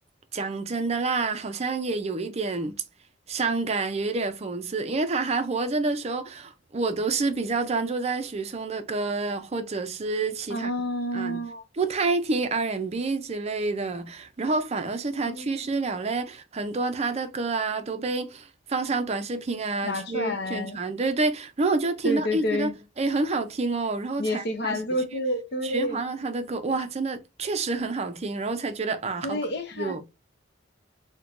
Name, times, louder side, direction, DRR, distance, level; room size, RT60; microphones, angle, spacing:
voice 1, 0.3-2.8 3.3-10.7 11.1-11.4 11.7-24.8 25.1-25.2 25.6-29.4 29.7-30.0, right 3 dB, 35° right, 0.5 m, -28 dB
voice 2, 10.5-11.7 15.2-15.6 19.8-20.8 22.0-22.7 24.2-26.0 29.2-29.9, left 1 dB, 60° left, 0.7 m, -29 dB
4.4 x 2.2 x 2.4 m
head